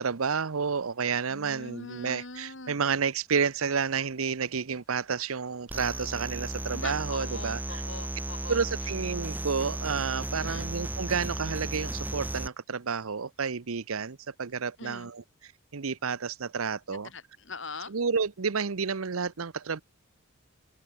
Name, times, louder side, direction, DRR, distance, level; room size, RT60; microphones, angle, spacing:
voice 1, 0.0-7.8 8.5-17.1 17.9-19.8, right 5 dB, 80° right, 0.8 m, -30 dB
voice 2, 1.3-2.8 6.7-8.6 10.3-10.7 14.8-15.1 16.9-17.9, left 3 dB, 60° left, 4.1 m, -42 dB
sound 1, 5.7-12.5, right 1 dB, 10° right, 0.5 m, -35 dB
head